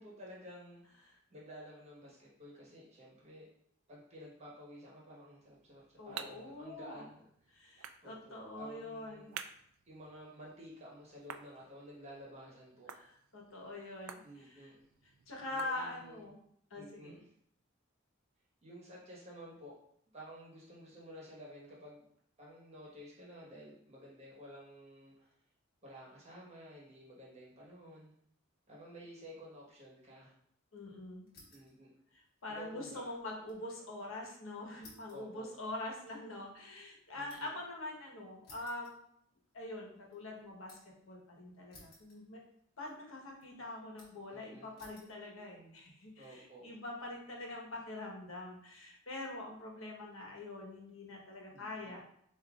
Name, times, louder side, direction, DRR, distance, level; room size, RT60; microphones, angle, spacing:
voice 1, 0.0-3.5 3.9-7.3 8.0-9.3 9.8-12.9 14.2-14.9 15.5-16.3 16.7-17.3 18.6-19.7 20.1-22.1 22.4-25.4 25.8-28.1 28.7-30.3 31.5-31.9 32.5-33.1 35.1-35.5 37.1-37.5 44.3-44.7 46.2-46.6 51.5-51.9, equal, 30° right, -5 dB, 1.2 m, -52 dB
sound 1, 5.4-16.3, right 8 dB, 75° right, 0.3 m, -53 dB
voice 2, 6.0-7.0 7.5-9.4 12.9-14.7 15.3-16.4 16.7-17.2 30.7-31.3 32.4-39.0 39.5-40.8 41.0-42.4 42.8-52.0, left 2 dB, 75° left, -1 dB, 1.2 m, -44 dB
sound 2, 31.3-31.8 32.1-33.7 34.0-34.1 34.8-37.7 38.4-39.6 40.0-41.0 41.7-42.6 42.9-43.4 44.0-44.3 44.8-45.2 45.8-46.3, left 2 dB, 50° left, 1.3 m, -60 dB
7.2 x 2.7 x 2.4 m, 0.69 s
head